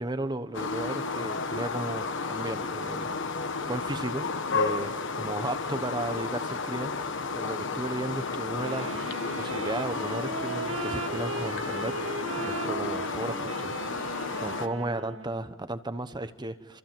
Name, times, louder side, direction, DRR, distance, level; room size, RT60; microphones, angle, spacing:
voice 1, 0.0-3.2 3.7-9.0 9.4-11.9 12.3-14.1 14.4-16.8, right 2 dB, 20° right, 10 dB, 1.1 m, -35 dB
sound 1, 0.5-14.7, left 4 dB, 60° left, 1.4 m, -32 dB
Wind instrument woodwind instrument, 8.6-15.5, right 3 dB, 70° right, 2.2 m, -37 dB
28.0 x 27.0 x 7.7 m, 1.1 s
head